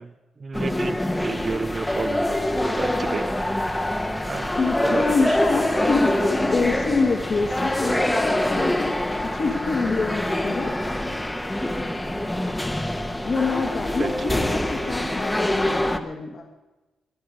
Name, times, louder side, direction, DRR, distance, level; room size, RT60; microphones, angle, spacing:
voice 1, 0.0-2.4 2.8-3.3 4.2-4.5 4.8-5.6 7.9-8.1 14.0-14.1, right 4 dB, 35° right, 14 dB, 0.7 m, -31 dB
sound 1, 0.5-16.0, left 1 dB, 10° left, 1.1 m, -25 dB
voice 2, 4.6-8.9 9.3-10.7 13.2-16.5, left 4 dB, 45° left, 3 dB, 1.6 m, -26 dB
21.5 x 11.5 x 5.1 m, 1.1 s
cardioid pair, 115°, 0 cm